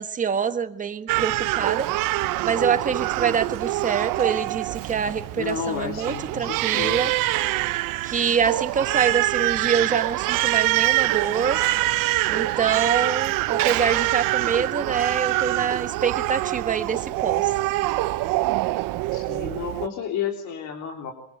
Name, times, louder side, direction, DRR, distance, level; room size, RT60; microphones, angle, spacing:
voice 1, 0.0-1.9 2.4-7.1 8.0-11.6 12.3-17.5, right 7 dB, 25° right, 10 dB, 1.4 m, -25 dB
Crying sobbing, 1.1-19.9, right 17 dB, 70° right, 1.1 m, -25 dB
voice 2, 5.4-7.2 19.1-21.1, left 7 dB, 55° left, 3 dB, 3.5 m, -31 dB
26.0 x 24.5 x 9.0 m, 0.65 s
cardioid pair, 180°, 34 cm